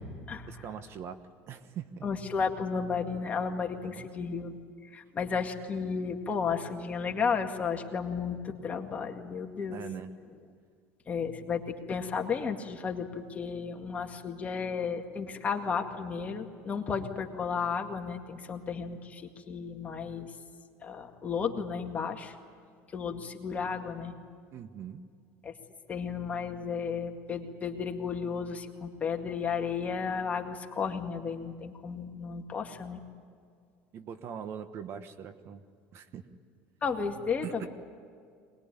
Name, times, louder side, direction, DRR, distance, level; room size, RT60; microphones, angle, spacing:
voice 1, 0.5-1.2 1.5-2.1 3.8-4.1 9.7-10.1 24.5-25.0 33.9-35.6 35.9-36.2 37.4-37.7, right 8 dB, 45° right, 11 dB, 1.2 m, -41 dB
voice 2, 2.0-4.5 4.8-9.8 11.1-20.3 20.8-22.4 22.9-24.1 25.4-25.5 25.9-33.0 36.8-37.7, left 6 dB, 25° left, 3 dB, 2.0 m, -33 dB
22.5 x 20.5 x 9.8 m, 2.2 s
supercardioid pair, 115°, 6 cm